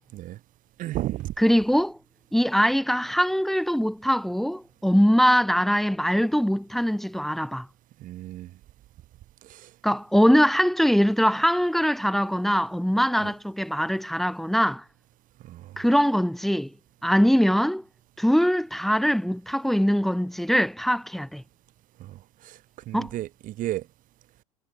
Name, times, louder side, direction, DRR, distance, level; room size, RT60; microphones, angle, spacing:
voice 1, 0.8-1.3 8.0-8.5 9.4-9.7 13.2-13.3 15.4-15.8 22.0-22.6 22.9-23.9, right 15 dB, 50° right, 3.0 m, -33 dB
voice 2, 1.4-2.0 2.3-7.7 9.8-14.8 15.8-16.7 17.0-17.8 18.2-21.4 22.9-23.1, equal, ahead, 2.2 m, -22 dB
hypercardioid pair, 95°, 18 cm